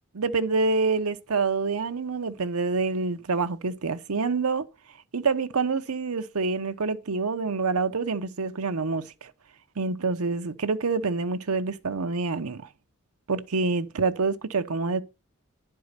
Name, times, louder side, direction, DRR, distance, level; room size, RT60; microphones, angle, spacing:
voice 1, 0.1-4.6 5.1-9.3 9.8-12.7 13.3-15.0, right 4 dB, 85° right, 0.8 m, -27 dB
10.5 x 4.7 x 6.6 m
head